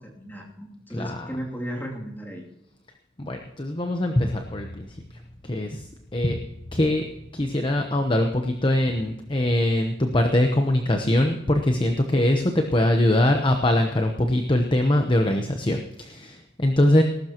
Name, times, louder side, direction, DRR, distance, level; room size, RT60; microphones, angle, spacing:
voice 1, 0.0-2.5, equal, 10° left, -1 dB, 2.7 m, -35 dB
voice 2, 0.9-1.3 3.2-6.4 6.7-17.0, left 1 dB, 25° left, 4 dB, 0.9 m, -23 dB
19.5 x 12.5 x 3.0 m, 0.85 s
head